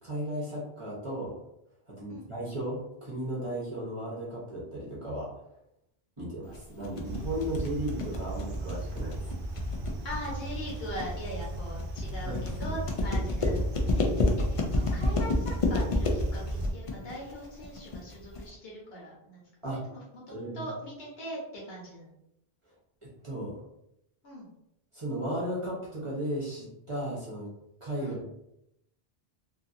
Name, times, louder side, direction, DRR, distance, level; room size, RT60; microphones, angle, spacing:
voice 1, 0.0-1.3 2.0-5.3 6.2-9.2 12.2-12.8 19.6-19.8 20.3-20.7 23.2-23.5 24.9-27.5 27.8-28.3, right 1 dB, 30° right, -6 dB, 0.8 m, -35 dB
sound 1, 6.5-18.5, left 2 dB, 55° left, 0.4 m, -30 dB
voice 2, 6.7-7.1 10.0-19.5 19.9-22.1 24.2-24.5 28.0-28.2, equal, 70° left, -3 dB, 1.2 m, -41 dB
sound 2, 7.0-16.7, right 1 dB, 65° right, 0.8 m, -36 dB
2.7 x 2.6 x 2.6 m, 0.80 s
omnidirectional pair, 1.1 m